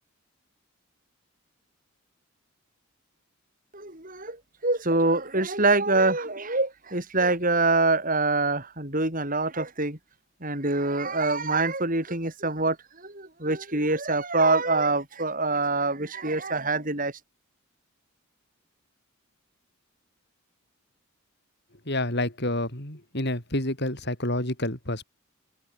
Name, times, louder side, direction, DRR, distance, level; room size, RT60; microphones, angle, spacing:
voice 1, 3.7-10.0 10.4-17.1, right 3 dB, 40° right, 7.1 m, -25 dB
voice 2, 21.9-25.0, left 1 dB, 50° left, 5.4 m, -28 dB
open air
head